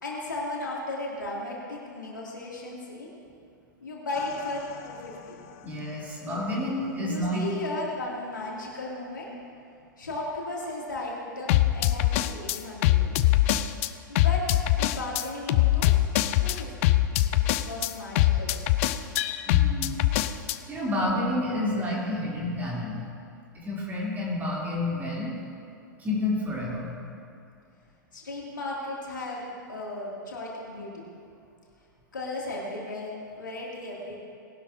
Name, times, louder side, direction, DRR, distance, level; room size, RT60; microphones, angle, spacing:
voice 1, 0.0-3.1 3.8-5.4 6.2-6.4 7.0-9.3 10.0-13.1 14.1-14.4 14.7-15.9 16.4-16.7 17.3-18.6 28.1-31.0 32.1-34.2, left 2 dB, 70° left, -4 dB, 2.9 m, -35 dB
sound 1, 4.2-4.4 11.5-13.9 14.1-20.6, left 15 dB, 40° left, 0.5 m, -23 dB
voice 2, 5.6-7.4 19.1-20.0 20.6-23.0 23.5-25.3 26.0-26.9, left 1 dB, 15° right, -5 dB, 3.5 m, -29 dB
19.5 x 12.0 x 2.9 m, 2.4 s
figure-of-eight pair, 100°, 11 cm